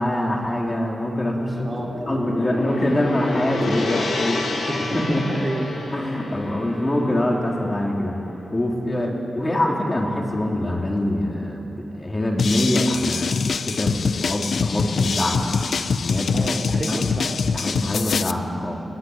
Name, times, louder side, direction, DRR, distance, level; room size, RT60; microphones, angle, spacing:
voice 1, 0.0-1.7 2.1-4.5 4.9-5.4 5.9-8.2 8.5-13.4 13.7-15.5 16.0-17.0 17.5-18.8, left 1 dB, 25° left, -1 dB, 3.5 m, -24 dB
Gong, 1.3-9.7, left 2 dB, 85° left, 4.2 m, -30 dB
voice 2, 1.6-2.2 4.7-5.8 8.9-9.2 16.3-17.6, right 2 dB, 35° right, 0 dB, 3.2 m, -31 dB
sound 1, 12.4-18.3, left 5 dB, 70° left, 0.7 m, -24 dB
22.5 x 19.5 x 9.5 m, 2.8 s
wide cardioid pair, 115°, 0 cm